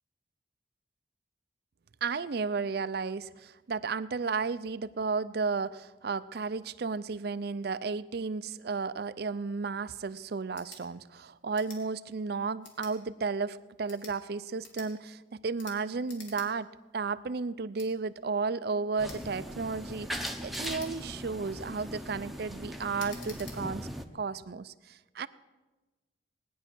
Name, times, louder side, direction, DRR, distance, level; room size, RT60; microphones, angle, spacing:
voice 1, 2.0-16.7 16.9-23.9 24.1-25.3, right 4 dB, 60° right, 15 dB, 0.5 m, -33 dB
sound 1, 10.5-10.8 11.5-11.8 12.6-12.9 13.7-14.2 14.6-14.9 15.6-15.8 16.1-16.5 16.8-16.9 17.7-17.9 19.0-19.2 20.1-21.2 21.7-22.0 23.0-23.6, left 4 dB, 80° left, 2.9 m, -48 dB
sound 2, 19.0-24.0, equal, ahead, 0.8 m, -39 dB
18.5 x 10.0 x 6.1 m, 1.1 s
head